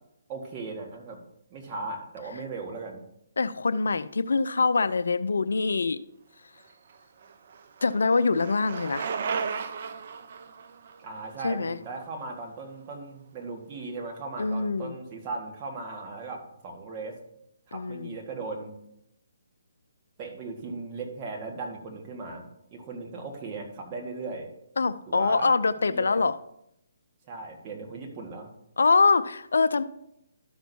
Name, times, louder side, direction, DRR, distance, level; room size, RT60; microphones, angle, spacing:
voice 1, 0.3-1.2 1.5-3.0 11.0-17.2 17.7-18.7 20.2-24.5 25.1-26.3 27.3-28.5, right 3 dB, 30° right, 0 dB, 1.6 m, -37 dB
voice 2, 3.4-6.0 7.8-9.1 11.4-11.8 14.4-14.9 17.7-18.1 24.8-26.3 28.8-29.8, left 4 dB, 80° left, 14 dB, 0.4 m, -24 dB
Bicycle, 6.7-12.7, right 5 dB, 50° right, 0.6 m, -36 dB
12.5 x 6.0 x 2.7 m, 0.78 s
hypercardioid pair, 150°, 0 cm